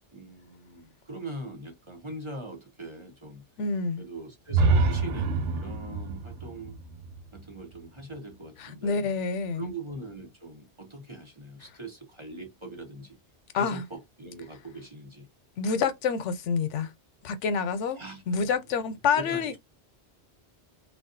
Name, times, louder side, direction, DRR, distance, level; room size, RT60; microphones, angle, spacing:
voice 1, 0.1-3.5 4.0-6.8 7.3-9.1 9.5-13.2 13.5-15.3 18.0-18.4 19.1-19.6, right 2 dB, 30° right, 0.8 m, -42 dB
voice 2, 3.6-4.0 8.6-9.7 13.5-13.8 15.6-16.9 17.2-18.0 18.3-19.6, left 5 dB, 90° left, 0.9 m, -27 dB
sound 1, 4.5-8.3, right 3 dB, 80° right, 0.9 m, -27 dB
3.3 x 2.3 x 2.5 m
omnidirectional pair, 1.2 m